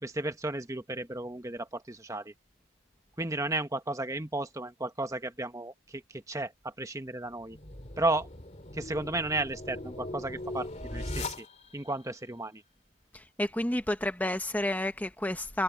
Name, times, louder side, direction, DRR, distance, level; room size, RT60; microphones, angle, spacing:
voice 1, 0.0-2.3 3.2-7.6 8.0-8.3 8.7-11.4 11.7-12.6, right 2 dB, 15° right, 1.2 m, -34 dB
sound 1, 7.3-11.9, left 2 dB, 35° left, 2.7 m, -39 dB
voice 2, 13.1-15.6, left 1 dB, 10° left, 1.0 m, -30 dB
head